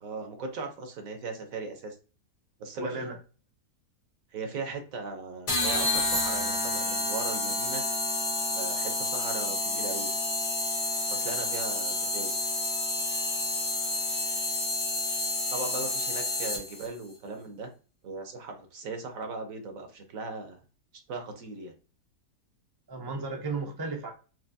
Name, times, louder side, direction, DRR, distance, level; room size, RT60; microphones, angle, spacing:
voice 1, 0.0-2.0 2.6-3.1 4.3-7.8 8.5-10.2 11.1-12.3 15.5-17.7 18.0-20.6 21.1-21.7, right 3 dB, 60° right, 5 dB, 1.2 m, -38 dB
voice 2, 2.8-3.1 22.9-24.1, right 3 dB, 30° right, 0 dB, 0.4 m, -34 dB
sound 1, 5.5-16.9, left 2 dB, 75° left, 1.8 m, -29 dB
4.5 x 2.8 x 2.7 m, 0.35 s
omnidirectional pair, 1.7 m